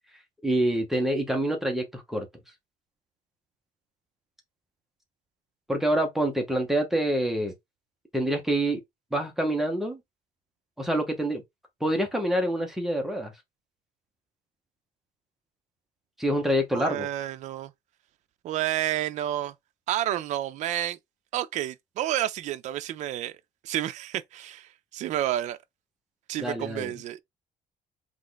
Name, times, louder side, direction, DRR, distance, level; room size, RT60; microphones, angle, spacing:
voice 1, 0.4-2.3 5.7-7.5 8.1-8.8 9.1-10.0 10.8-11.4 11.8-13.3 16.2-17.1 26.4-26.9, right 1 dB, ahead, 0.9 m, -26 dB
voice 2, 16.7-17.7 18.4-19.5 19.9-21.0 21.3-23.4 23.6-25.6 26.3-27.2, right 13 dB, 55° right, 0.5 m, -30 dB
3.7 x 3.1 x 3.9 m
cardioid pair, 165°, 15 cm